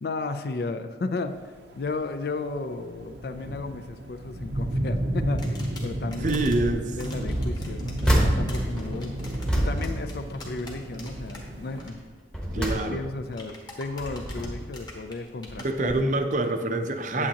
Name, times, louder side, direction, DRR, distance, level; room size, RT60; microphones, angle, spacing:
voice 1, 0.0-1.4 1.8-5.5 5.8-9.1 9.5-12.0 12.5-16.1 17.1-17.3, left 3 dB, 60° left, 9 dB, 0.4 m, -34 dB
sound 1, 1.4-11.9, right 1 dB, 85° right, 0.7 m, -33 dB
sound 2, 5.4-6.6 7.0-11.4 11.7-11.9 13.3-15.7, left 2 dB, 25° left, 1.1 m, -45 dB
sound 3, 6.2-6.8 7.2-10.9 11.3-11.6 12.1-13.4 13.9-14.8 15.5-15.6 15.9-16.0, right 1 dB, 5° left, 0.9 m, -29 dB
voice 2, 6.2-7.4 12.5-13.1 15.6-17.3, right 2 dB, 45° right, 7 dB, 0.5 m, -26 dB
8.7 x 8.2 x 2.9 m, 1.5 s
head